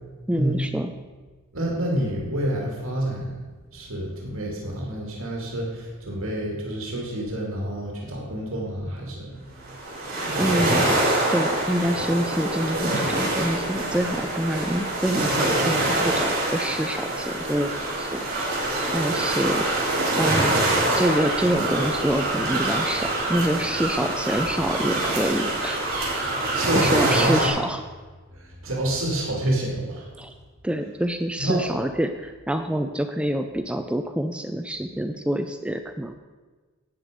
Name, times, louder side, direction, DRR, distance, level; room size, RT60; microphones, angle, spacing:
voice 1, 0.3-0.9 10.3-11.0 11.3-18.3 18.6-19.7 20.2-20.6 20.9-25.8 26.5-27.8 30.2-30.3 30.6-36.1, right 1 dB, 5° right, 7 dB, 0.4 m, -26 dB
voice 2, 1.5-3.4 3.7-10.4 26.3-27.5 28.3-30.1 31.4-31.7, right 1 dB, 75° right, -2 dB, 2.5 m, -28 dB
sound 1, 9.6-27.5, right 2 dB, 45° right, 4.3 m, -25 dB
12.5 x 8.9 x 5.1 m, 1.3 s
head